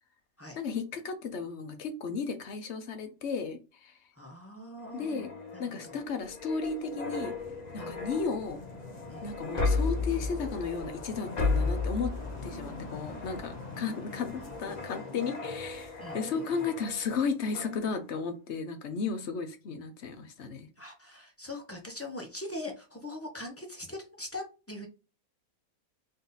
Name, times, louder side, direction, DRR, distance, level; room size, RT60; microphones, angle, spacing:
voice 1, 0.6-3.9 4.9-5.3 5.6-7.3 7.7-8.6 9.2-12.2 12.4-20.7, left 5 dB, 55° left, 6 dB, 1.0 m, -34 dB
voice 2, 4.1-6.0 7.8-8.0 9.1-9.3 14.4-15.5 16.0-16.7 20.8-24.9, left 1 dB, 15° left, 1 dB, 0.7 m, -43 dB
sound 1, 4.9-17.2 17.5-17.8, left 3 dB, 30° left, 1.0 m, -35 dB
4.0 x 2.7 x 3.9 m, 0.32 s
omnidirectional pair, 1.5 m